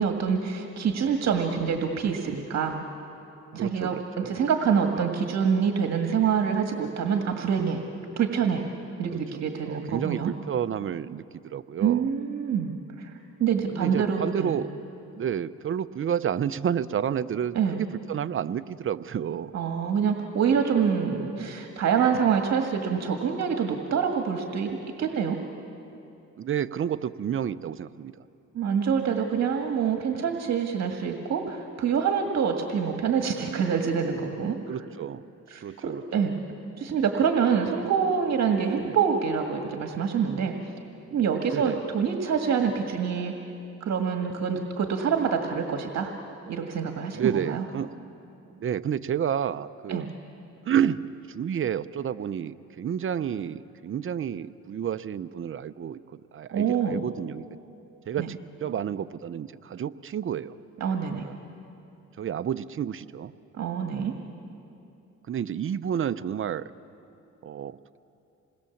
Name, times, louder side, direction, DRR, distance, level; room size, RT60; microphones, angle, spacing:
voice 1, 0.0-2.8 3.5-7.8 8.2-8.6 9.0-10.3 11.8-13.1 13.4-14.6 17.5-17.8 19.5-25.4 28.5-34.8 35.5-36.4 36.8-40.5 41.1-43.3 43.8-46.1 46.5-47.6 49.9-50.1 56.5-57.0 58.2-58.3 60.8-61.3 63.5-64.2, right 7 dB, 60° right, 4 dB, 1.8 m, -26 dB
voice 2, 3.6-4.4 9.1-9.2 9.7-12.0 13.7-14.7 15.1-19.5 26.4-28.1 34.7-35.2 35.6-36.0 38.7-39.0 41.5-41.8 47.1-47.9 48.6-50.1 50.6-51.0 51.3-56.0 56.3-57.4 58.1-60.5 61.2-61.3 62.2-63.3 65.3-66.7 67.4-68.0, right 9 dB, 45° right, 13 dB, 0.7 m, -30 dB
27.5 x 20.5 x 7.2 m, 2.7 s
cardioid pair, 90°, 30 cm